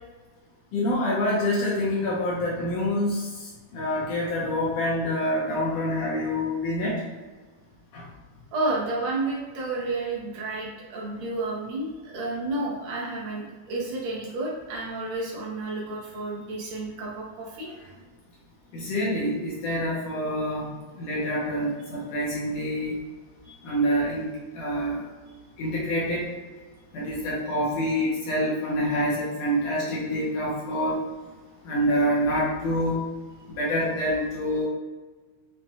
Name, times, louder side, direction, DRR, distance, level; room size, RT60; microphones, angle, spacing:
voice 1, 0.7-3.2 3.7-6.9 7.9-8.0 18.7-20.6 21.0-23.0 23.6-24.3 24.5-25.0 25.6-26.2 26.9-31.0 31.7-33.0 33.6-34.7, equal, 75° left, -5 dB, 1.6 m, -26 dB
voice 2, 8.5-17.7 23.5-23.6, right 2 dB, 75° right, -4 dB, 1.8 m, -31 dB
5.7 x 2.1 x 2.7 m, 1.3 s
omnidirectional pair, 3.4 m